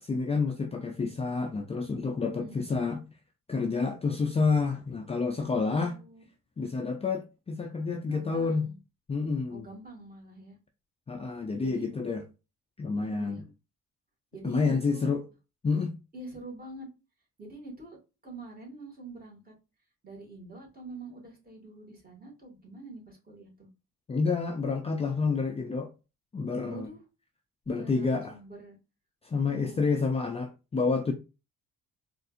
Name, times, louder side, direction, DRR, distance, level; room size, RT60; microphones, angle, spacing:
voice 1, 0.0-3.0 3.5-6.0 6.6-8.7 9.1-9.7 11.1-12.2 12.8-13.4 14.4-15.2 15.6-15.9 24.1-25.9 26.3-26.9 27.7-28.3 29.2-31.1, left 4 dB, 20° left, 0.4 m, -29 dB
voice 2, 5.5-6.2 8.1-8.8 9.5-10.6 11.6-11.9 13.0-13.4 14.3-15.1 16.1-16.9 17.4-18.0 18.2-19.5 20.0-23.7 26.6-27.0 27.7-28.8 29.3-30.0, right 2 dB, 30° right, 1.9 m, -45 dB
4.1 x 2.5 x 2.5 m
cardioid pair, 100°, 31 cm